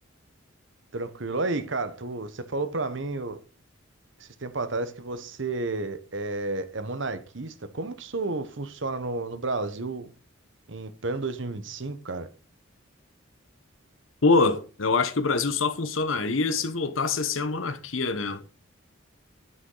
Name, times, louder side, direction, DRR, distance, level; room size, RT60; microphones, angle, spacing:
voice 1, 0.9-3.4 4.2-10.1 10.7-12.3, right 3 dB, 65° right, 1.0 m, -31 dB
voice 2, 14.2-18.4, left 3 dB, 75° left, 1.0 m, -25 dB
9.3 x 8.0 x 3.9 m
head